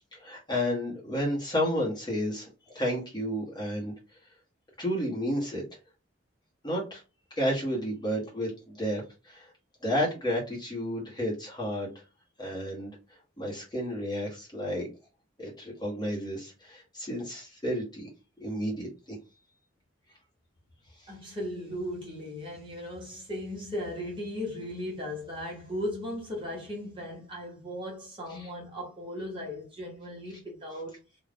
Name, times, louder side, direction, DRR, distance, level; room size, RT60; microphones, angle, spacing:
voice 1, 0.1-2.5 2.7-3.9 4.8-5.6 6.6-7.0 7.4-9.5 9.8-11.9 12.4-12.9 13.4-14.9 15.4-18.1 18.4-19.2 21.0-21.1 28.3-28.5, equal, 20° left, 1.0 m, -31 dB
voice 2, 21.1-31.0, left 1 dB, 25° right, 1.0 m, -37 dB
2.5 x 2.3 x 3.4 m
head